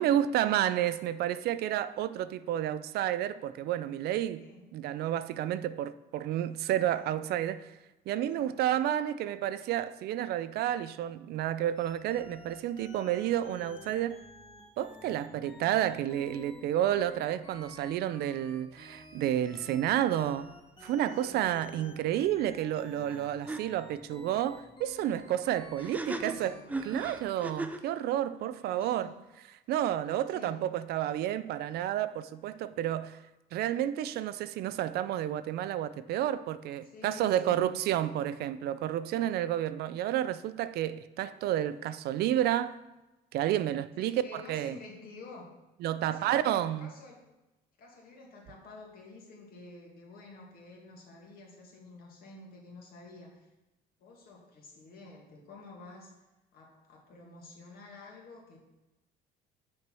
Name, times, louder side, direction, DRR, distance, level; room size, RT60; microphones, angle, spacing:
voice 1, 0.0-4.4 4.7-7.7 8.1-14.2 14.8-20.5 20.8-26.5 26.8-29.1 29.7-33.2 33.5-42.8 43.3-44.7 45.8-46.9, right 12 dB, 70° right, 0.4 m, -30 dB
voice 2, 4.4-4.7 6.9-7.1 8.2-8.7 21.2-21.6 25.9-26.8 28.4-29.2 30.3-30.7 36.8-37.8 44.0-45.5 46.0-47.3 47.8-53.5 54.0-56.1 56.5-58.6, left 3 dB, 60° left, 2.0 m, -50 dB
sound 1, 11.8-27.2, left 2 dB, 30° left, 1.7 m, -51 dB
sound 2, 23.1-23.2 23.5-23.6 25.8-27.9, right 2 dB, 10° right, 0.5 m, -36 dB
6.3 x 4.5 x 6.1 m
cardioid pair, 110°, 17 cm